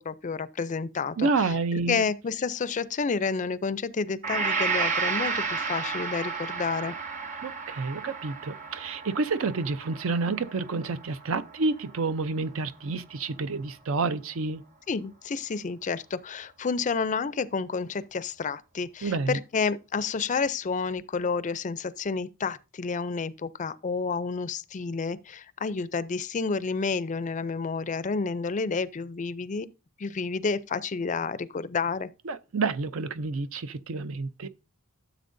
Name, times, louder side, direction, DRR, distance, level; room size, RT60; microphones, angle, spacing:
voice 1, 0.0-1.3 1.9-6.9 14.9-29.7 30.0-32.1, left 5 dB, 35° left, 0.4 m, -30 dB
voice 2, 1.2-2.1 7.4-14.6 19.0-19.4 32.2-34.5, right 4 dB, 65° right, 0.6 m, -29 dB
Gong, 4.2-12.3, right 5 dB, 35° right, 1.0 m, -32 dB
13.0 x 7.3 x 2.6 m
head